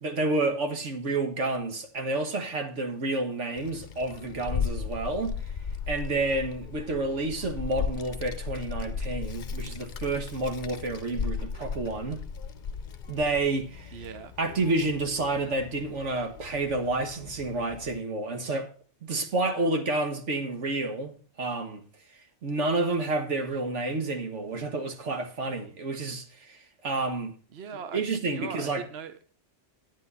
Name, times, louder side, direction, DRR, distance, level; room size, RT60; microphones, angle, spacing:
voice 1, 0.0-5.4 5.9-12.2 13.1-14.0 14.4-18.7 19.0-21.8 22.4-27.4 27.9-28.8, right 2 dB, 80° right, 1.8 m, -29 dB
Child speech kid speaking, 3.6-18.0, left 6 dB, 50° left, 0.8 m, -36 dB
voice 2, 13.9-14.3 27.5-29.1, right 6 dB, 60° right, 1.1 m, -40 dB
10.5 x 9.1 x 4.2 m
omnidirectional pair, 1.2 m